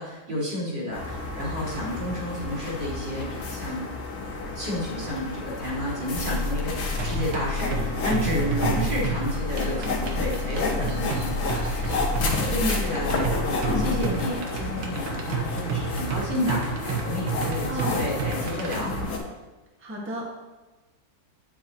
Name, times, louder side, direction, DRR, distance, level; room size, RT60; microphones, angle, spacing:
voice 1, 0.0-3.9 4.5-16.7 17.0-18.9, left 1 dB, 65° right, -8 dB, 4.0 m, -31 dB
sound 1, 0.9-19.2, left 3 dB, 90° left, 2.0 m, -31 dB
sound 2, 6.1-14.1, left 3 dB, 45° left, 1.4 m, -31 dB
sound 3, 7.0-19.0, right 5 dB, 85° right, 1.9 m, -31 dB
voice 2, 17.7-18.1 19.8-20.3, equal, 5° right, -3 dB, 1.2 m, -34 dB
9.3 x 8.4 x 3.0 m, 1.1 s
omnidirectional pair, 2.1 m